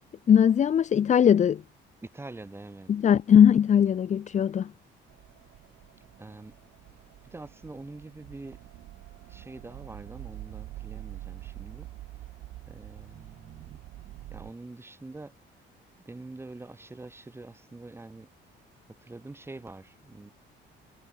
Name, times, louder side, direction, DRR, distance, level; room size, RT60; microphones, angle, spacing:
voice 1, 0.3-1.6 2.9-4.7, left 8 dB, 35° left, 0.8 m, -20 dB
voice 2, 2.0-2.9 6.2-6.5 7.2-8.6 9.3-11.9 12.7-13.8 14.3-15.3 16.0-18.3 18.9-20.3, right 2 dB, 10° right, 2.9 m, -45 dB
sound 1, 5.1-14.5, right 16 dB, 90° right, 7.6 m, -46 dB
cardioid pair, 135°, 20 cm